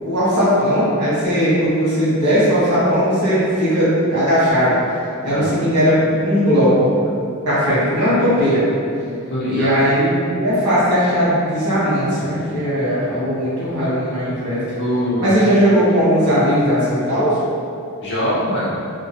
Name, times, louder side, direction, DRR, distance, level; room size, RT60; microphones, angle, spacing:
voice 1, 0.0-4.8 5.2-6.9 7.4-8.7 9.5-14.6 15.2-17.4, equal, 80° right, -10 dB, 1.3 m, -17 dB
voice 2, 9.3-9.8 14.8-15.3 18.0-18.8, equal, 55° left, -9 dB, 0.9 m, -22 dB
2.9 x 2.2 x 2.8 m, 2.5 s
head